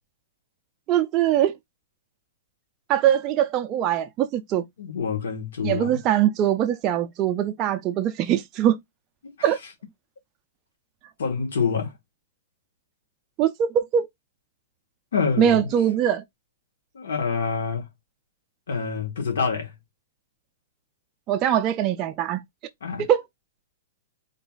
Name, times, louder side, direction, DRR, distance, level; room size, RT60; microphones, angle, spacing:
voice 1, 0.9-1.5 2.9-4.6 5.6-8.8 9.4-9.6 13.4-14.1 15.4-16.2 21.3-22.4 23.1-23.2, right 10 dB, 20° right, 0.3 m, -22 dB
voice 2, 4.8-6.0 9.2-9.3 11.2-11.9 15.1-15.7 16.9-17.9 18.7-19.7 22.8-23.0, left 5 dB, 80° left, 1.5 m, -26 dB
3.8 x 2.4 x 3.8 m
hypercardioid pair, 170°, 0 cm